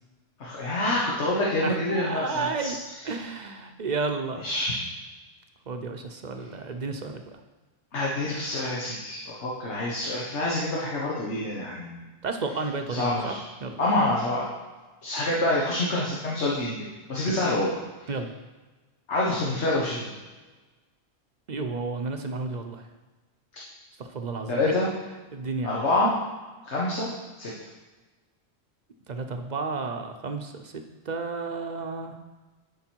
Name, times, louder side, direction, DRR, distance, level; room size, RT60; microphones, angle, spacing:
voice 1, 0.4-2.7 4.4-4.8 7.9-12.0 12.9-13.4 13.8-14.5 15.0-16.8 17.1-17.8 19.1-20.1 24.5-24.9 25.6-26.1 26.6-27.1 27.4-27.5, left 1 dB, 85° left, -5 dB, 1.6 m, -26 dB
voice 2, 1.6-2.8 3.0-4.4 5.7-7.4 12.2-13.4 13.6-13.9 17.3-17.4 18.1-18.3 21.5-22.8 24.0-24.6 25.3-25.8 29.1-30.7 31.1-32.1, right 4 dB, 45° right, 5 dB, 0.7 m, -32 dB
12.0 x 4.8 x 4.5 m, 1.3 s
omnidirectional pair, 1.1 m